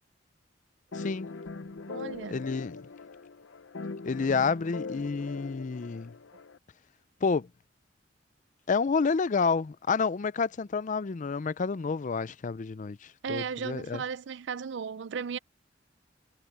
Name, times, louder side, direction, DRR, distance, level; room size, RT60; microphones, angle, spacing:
sound 1, 0.9-6.6, left 4 dB, 80° left, 0.7 m, -41 dB
voice 1, 0.9-1.3 2.3-2.8 4.0-6.1 7.2-7.5 8.7-14.0, left 5 dB, 45° left, 0.5 m, -29 dB
voice 2, 1.9-2.4 13.2-15.4, right 6 dB, 70° right, 0.5 m, -35 dB
head